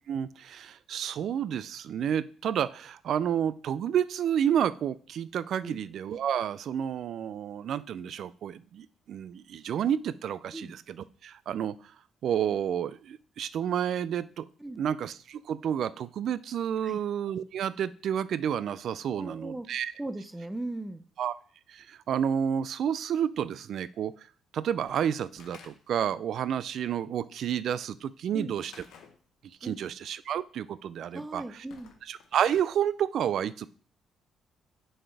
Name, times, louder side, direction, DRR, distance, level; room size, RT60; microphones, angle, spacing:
voice 1, 0.1-11.8 12.2-14.5 14.8-19.9 21.2-21.3 21.7-24.1 24.5-28.7 29.6-31.6 32.1-33.7, right 9 dB, 70° right, 17 dB, 0.3 m, -30 dB
voice 2, 19.2-19.7 20.0-21.0 28.3-28.5 29.6-29.8 31.1-31.9, right 2 dB, 10° right, 11 dB, 0.6 m, -38 dB
Slam / Wood, 24.8-26.1 28.6-29.2 31.6-32.7, left 6 dB, 80° left, 0.9 m, -52 dB
7.5 x 4.3 x 3.4 m, 0.43 s
cardioid pair, 90°, 0 cm